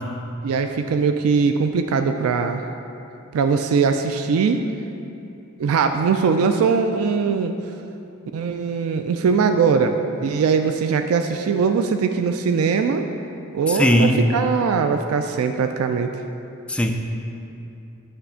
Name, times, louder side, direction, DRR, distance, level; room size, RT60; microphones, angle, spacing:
voice 1, 0.4-2.6 3.3-4.6 5.6-7.5 8.3-13.1 13.5-16.2, right 5 dB, 85° right, 7 dB, 0.3 m, -21 dB
voice 2, 13.7-14.2 16.7-16.9, left 1 dB, 5° left, 3 dB, 0.3 m, -18 dB
9.6 x 3.3 x 5.6 m, 2.8 s
head